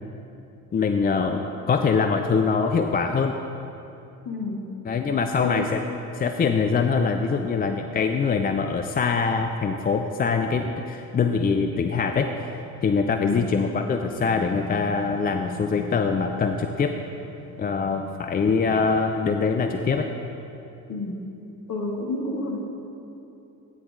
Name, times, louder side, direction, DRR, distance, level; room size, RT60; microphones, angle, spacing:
voice 1, 0.7-3.4 4.8-5.8 6.1-12.3 12.8-17.0 17.6-20.1, left 5 dB, 20° left, 6 dB, 0.5 m, -23 dB
voice 2, 4.3-4.7 5.4-5.7 13.2-13.5 20.9-21.2 21.7-22.6, left 2 dB, 40° left, 0 dB, 2.3 m, -30 dB
sound 1, 14.1-19.3, equal, 90° right, 2.0 m, -41 dB
16.0 x 9.8 x 3.8 m, 2.9 s
figure-of-eight pair, 55°, 49 cm